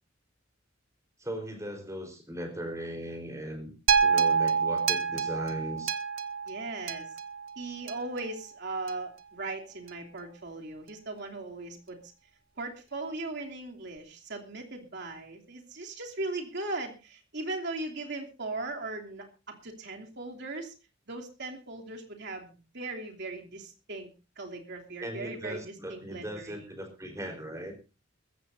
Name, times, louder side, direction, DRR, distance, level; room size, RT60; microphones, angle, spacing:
voice 1, 1.2-3.7 4.0-6.0 25.0-27.7, right 1 dB, 15° right, 4 dB, 4.2 m, -38 dB
sound 1, 3.9-8.2 8.9-9.0, right 6 dB, 80° right, 1.1 m, -27 dB
voice 2, 6.5-7.1 7.6-12.0 12.6-20.8 21.1-26.7, right 2 dB, 60° right, 2 dB, 3.0 m, -38 dB
21.5 x 15.0 x 2.7 m, 0.30 s
head